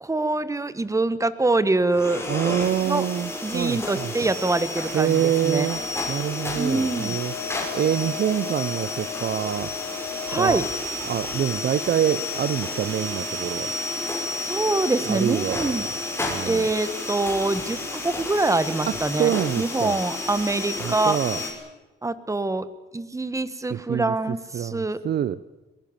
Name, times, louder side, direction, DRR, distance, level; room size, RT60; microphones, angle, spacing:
voice 1, 0.0-2.6 2.8-3.0 3.4-5.7 6.5-7.2 10.3-10.7 14.4-15.9 16.5-21.2 22.0-22.7 22.9-25.0, right 2 dB, 15° right, 15 dB, 1.6 m, -25 dB
sound 1, 1.9-21.5, left 3 dB, 10° left, 6.0 m, -31 dB
voice 2, 2.3-4.1 4.9-5.8 6.1-9.7 10.3-10.6 11.0-13.7 15.1-15.8 16.3-16.7 18.9-20.0 20.8-21.4 23.7-24.1 24.5-25.4, right 10 dB, 55° right, 17 dB, 0.7 m, -26 dB
22.5 x 20.5 x 7.3 m, 1.1 s
cardioid pair, 90°, 20 cm